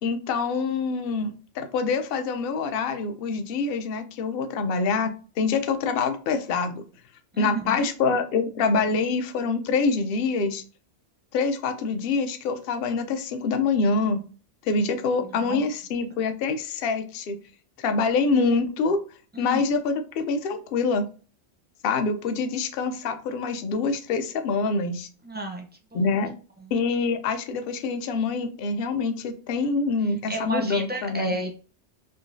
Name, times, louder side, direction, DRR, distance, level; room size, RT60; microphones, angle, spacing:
voice 1, 0.0-6.8 7.4-10.6 11.3-14.2 14.6-17.4 17.8-19.0 19.4-21.1 21.8-25.1 25.9-26.3 26.7-31.3, left 4 dB, 60° left, 8 dB, 0.7 m, -25 dB
voice 2, 7.3-7.9 15.2-15.6 19.3-19.6 25.2-26.2 26.6-26.7 30.3-31.5, right 1 dB, 15° right, 1 dB, 0.4 m, -32 dB
3.6 x 2.9 x 2.6 m, 0.37 s
omnidirectional pair, 1.2 m